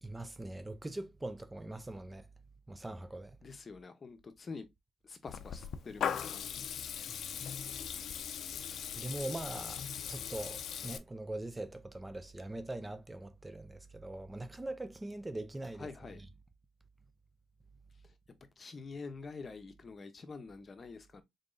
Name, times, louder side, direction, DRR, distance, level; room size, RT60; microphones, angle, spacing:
voice 1, 0.0-2.3 2.7-3.4 7.0-7.3 8.9-9.8 10.1-15.9 16.2-16.3, right 2 dB, 15° right, 0.4 m, -42 dB
voice 2, 3.4-4.7 5.0-6.4 15.8-16.2 18.6-21.2, left 4 dB, 35° left, 0.8 m, -46 dB
Water tap faucet / Liquid, 5.3-11.0, left 8 dB, 65° left, 0.4 m, -39 dB
3.9 x 3.5 x 2.6 m
cardioid pair, 90°, 0 cm